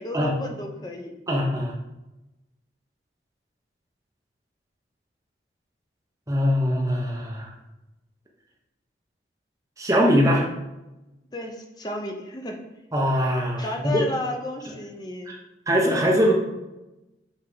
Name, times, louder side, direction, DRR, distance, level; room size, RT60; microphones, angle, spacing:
voice 1, 0.0-1.2 11.3-12.6 13.6-15.3, left 1 dB, 20° left, 2 dB, 0.8 m, -32 dB
voice 2, 1.3-1.7 6.3-7.5 9.8-10.5 12.9-14.0 15.3-15.4 15.7-16.3, equal, 15° right, -2 dB, 1.1 m, -22 dB
7.0 x 3.7 x 5.0 m, 1.0 s
head